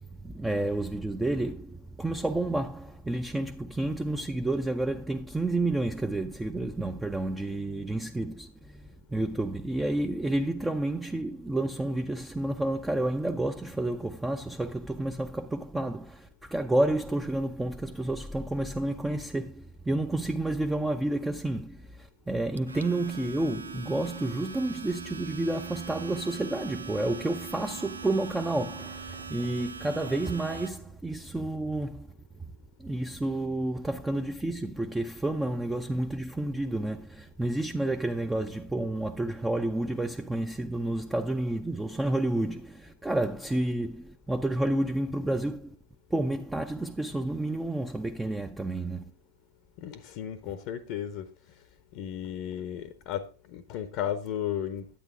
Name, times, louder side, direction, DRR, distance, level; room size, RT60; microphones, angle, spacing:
voice 1, 0.2-32.1 32.8-45.8 46.1-49.1, right 2 dB, 5° right, 0.4 m, -30 dB
Domestic sounds home sounds, 22.6-30.7, right 5 dB, 75° right, 0.5 m, -42 dB
voice 2, 49.8-51.3 51.9-54.9, left 10 dB, 40° left, 0.6 m, -34 dB
10.0 x 8.7 x 3.6 m
figure-of-eight pair, 100°, 0 cm